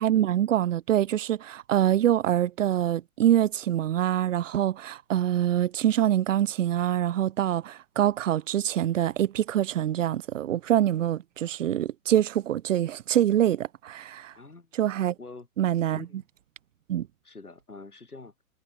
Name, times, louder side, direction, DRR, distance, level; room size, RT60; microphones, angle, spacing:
voice 1, 0.0-14.3 14.8-15.1 15.6-16.0 16.9-17.1, right 11 dB, 60° right, 0.5 m, -25 dB
voice 2, 14.3-14.7 15.2-15.5 16.0-16.2 17.2-18.3, left 3 dB, 80° left, 7.5 m, -45 dB
figure-of-eight pair, 120°, 44 cm